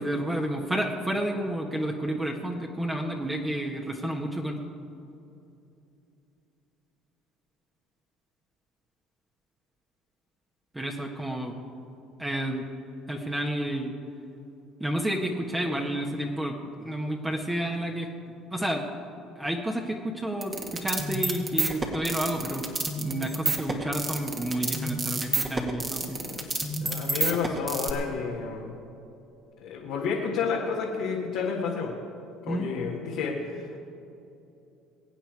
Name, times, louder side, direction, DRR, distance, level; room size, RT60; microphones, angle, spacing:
voice 1, 0.0-4.6 10.7-11.6 12.2-12.7 13.1-13.9 14.8-18.1 18.5-18.8 19.3-22.7 23.0-26.2 32.5-32.7, right 1 dB, 15° right, 0 dB, 1.6 m, -30 dB
sound 1, 20.4-27.9, right 3 dB, 30° right, 2.2 m, -29 dB
voice 2, 26.0-28.8 29.6-31.9 32.4-33.8, left 5 dB, 70° left, -3 dB, 1.8 m, -31 dB
22.5 x 9.0 x 4.8 m, 2.8 s
hypercardioid pair, 65°, 0 cm